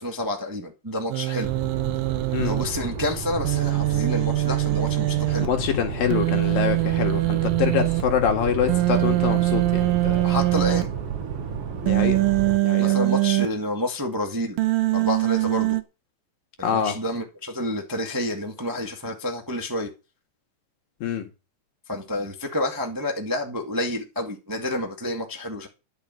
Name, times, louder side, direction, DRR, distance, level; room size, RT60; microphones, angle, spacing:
voice 1, 0.0-1.5 2.4-5.5 10.2-10.9 12.8-14.6 14.9-15.8 16.6-19.9 21.9-25.7, left 1 dB, 10° right, 0.9 m, -29 dB
Human voice, 1.1-2.6 3.5-5.5 6.1-8.0 8.7-10.8 11.9-13.5 14.6-15.8, right 18 dB, 85° right, 2.7 m, -23 dB
sound 1, 1.4-12.6, right 7 dB, 55° right, 2.1 m, -31 dB
voice 2, 5.4-10.4 11.8-12.2 12.6-13.1 16.6-17.0 21.0-21.3, left 8 dB, 85° left, 3.7 m, -25 dB
12.5 x 6.2 x 7.7 m
omnidirectional pair, 3.9 m